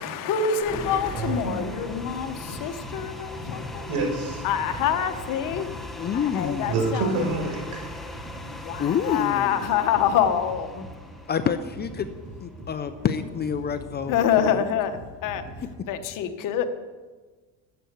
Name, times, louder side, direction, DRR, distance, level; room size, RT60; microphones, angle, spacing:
voice 1, 0.0-4.0 4.4-5.9 6.1-7.3 8.2-10.8 14.1-15.4 15.9-16.7, left 8 dB, 60° left, 8 dB, 1.4 m, -26 dB
sound 1, 0.6-12.8, left 1 dB, ahead, 1.4 m, -40 dB
sound 2, 0.7-15.8, right 1 dB, 30° right, 5.3 m, -43 dB
voice 2, 1.1-1.5 2.5-2.6 3.9-4.4 6.6-7.9, right 3 dB, 65° right, 2 dB, 5.1 m, -27 dB
voice 3, 6.0-6.7 8.8-9.6 11.3-12.1 12.4-14.1 14.5-14.6, left 7 dB, 25° left, 10 dB, 0.6 m, -27 dB
13.5 x 7.9 x 8.3 m, 1.4 s
cardioid pair, 130°, 37 cm